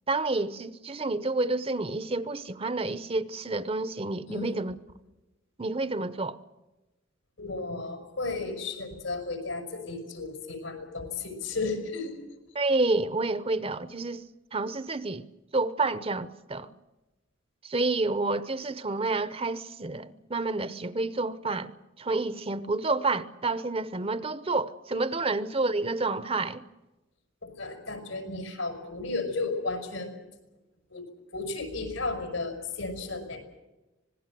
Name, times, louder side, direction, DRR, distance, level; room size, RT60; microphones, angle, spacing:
voice 1, 0.1-4.8 5.6-6.4 12.5-14.2 14.5-15.2 15.5-16.7 17.6-26.6, right 3 dB, 30° right, 0.8 m, -29 dB
voice 2, 7.4-12.2 27.4-30.2 30.9-31.0 31.3-33.4, left 3 dB, 90° left, 6.2 m, -34 dB
26.0 x 19.5 x 7.6 m
head